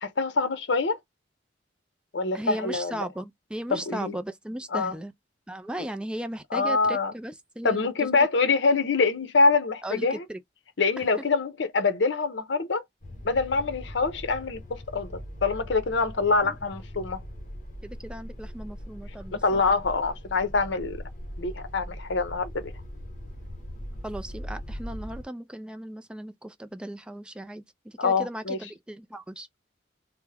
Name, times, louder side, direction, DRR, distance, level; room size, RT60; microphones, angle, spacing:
voice 1, 0.0-1.0 2.1-3.1 3.7-4.2 4.7-4.9 6.5-7.1 7.6-10.2 10.8-12.8 13.2-17.2 19.4-21.0 21.4-22.7 28.0-28.6, left 4 dB, 75° left, 0.7 m, -25 dB
voice 2, 2.3-5.1 5.5-8.1 9.8-10.4 11.0-11.1 16.4-16.6 17.8-19.6 24.0-29.5, right 1 dB, 5° right, 0.3 m, -37 dB
sound 1, 13.0-25.2, equal, 45° left, 1.0 m, -40 dB
3.4 x 2.1 x 3.3 m
head